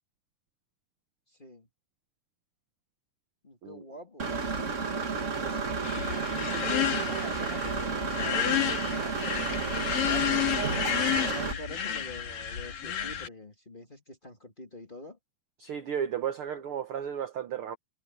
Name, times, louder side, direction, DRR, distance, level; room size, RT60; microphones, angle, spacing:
voice 1, 3.4-4.3 4.9-5.4 5.9-10.7 11.0-15.2, equal, 15° left, 2.1 m, -45 dB
Engine / Mechanisms, 4.2-11.5, right 4 dB, 30° right, 1.4 m, -31 dB
sound 1, 5.8-13.3, left 9 dB, 85° left, 4.1 m, -31 dB
voice 2, 15.6-17.8, right 8 dB, 65° right, 1.4 m, -33 dB
omnidirectional pair, 3.8 m